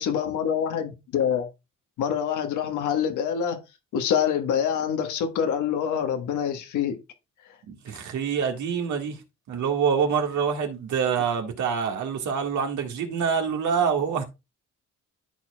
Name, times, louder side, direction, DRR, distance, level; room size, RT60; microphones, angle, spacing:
voice 1, 0.0-1.5 2.0-3.6 3.9-7.0, left 8 dB, 85° left, 1.4 m, -26 dB
voice 2, 7.7-9.2 9.5-14.2, right 6 dB, 70° right, 1.8 m, -26 dB
13.0 x 4.7 x 2.3 m
cardioid pair, 90°, 30 cm